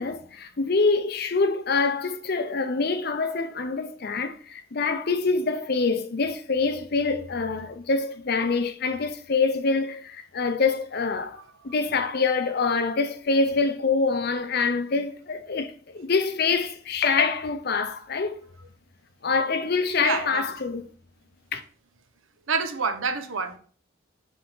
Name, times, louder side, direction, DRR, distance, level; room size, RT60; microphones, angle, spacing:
voice 1, 0.0-11.4 11.6-18.4 19.2-20.9 21.5-21.6, left 4 dB, 45° left, 0.6 m, -25 dB
voice 2, 20.0-20.4 22.5-23.6, right 4 dB, 70° right, 0.8 m, -27 dB
5.1 x 3.5 x 5.4 m
head